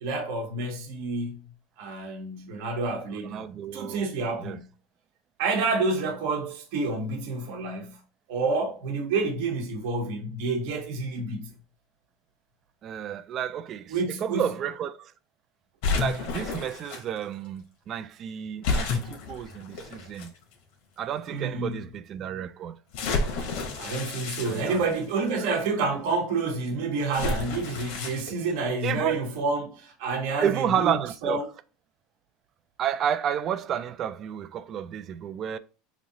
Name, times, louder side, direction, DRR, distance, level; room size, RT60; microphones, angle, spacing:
voice 1, 0.0-1.4 1.8-4.7 5.4-8.0 8.3-11.5 13.9-14.5 21.3-21.8 23.7-31.0 31.2-31.5, right 3 dB, 70° right, 0.9 m, -29 dB
voice 2, 3.2-4.0 4.4-4.6 12.8-15.1 15.9-20.3 21.0-22.8 24.4-24.8 28.8-29.2 30.4-31.4 32.8-35.6, right 9 dB, 40° right, 0.3 m, -31 dB
sound 1, 15.8-17.0 18.6-20.3 21.0-21.1 22.9-25.3 27.1-28.3, left 3 dB, 65° left, 1.1 m, -30 dB
3.0 x 2.7 x 3.9 m
supercardioid pair, 130°, 0 cm